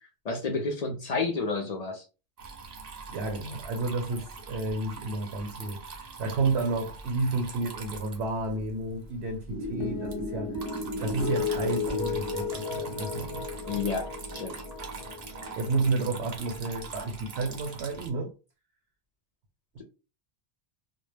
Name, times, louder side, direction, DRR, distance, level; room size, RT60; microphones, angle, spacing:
voice 1, 0.2-2.0 13.7-14.1 14.3-14.5, left 4 dB, 55° left, 0.4 m, -30 dB
Water tap faucet / Trickle dribble, 2.4-18.1, right 4 dB, 50° right, 0.5 m, -43 dB
voice 2, 3.1-10.5 11.0-13.5 15.6-18.3 19.7-19.8, right 3 dB, 75° right, 0.8 m, -31 dB
sound 1, 9.5-17.0, left 2 dB, 5° left, 0.6 m, -40 dB
sound 2, 9.8-16.4, left 5 dB, 30° left, 0.9 m, -35 dB
2.1 x 2.1 x 3.2 m
omnidirectional pair, 1.2 m